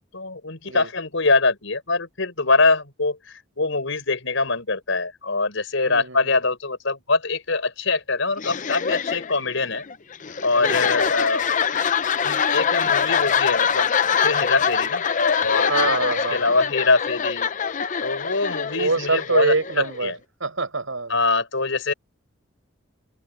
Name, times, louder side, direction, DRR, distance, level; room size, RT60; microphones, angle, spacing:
voice 1, 0.1-9.8 10.4-11.4 12.2-13.9 14.2-15.0 15.4-15.9 16.3-17.5 18.0-20.2 21.1-21.9, left 3 dB, 75° left, 4.7 m, -23 dB
voice 2, 5.8-6.2 10.6-10.9 15.7-16.6 18.7-20.1 20.4-21.2, right 3 dB, 90° right, 5.3 m, -25 dB
sound 1, 8.4-20.1, left 7 dB, 40° left, 0.7 m, -24 dB
open air
head